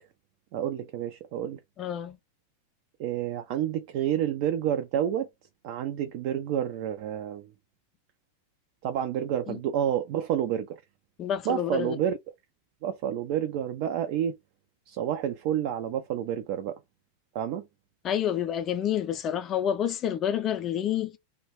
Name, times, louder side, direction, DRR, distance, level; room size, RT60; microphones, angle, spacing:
voice 1, 0.5-1.6 3.0-5.3 5.6-7.5 8.8-10.8 11.4-12.2 12.8-14.4 14.9-16.8 17.3-17.7, right 10 dB, 45° right, 0.3 m, -29 dB
voice 2, 1.8-2.2 9.5-9.6 11.2-12.0 18.0-21.2, left 10 dB, 30° left, 0.4 m, -28 dB
2.3 x 2.1 x 3.2 m
figure-of-eight pair, 90°, 0 cm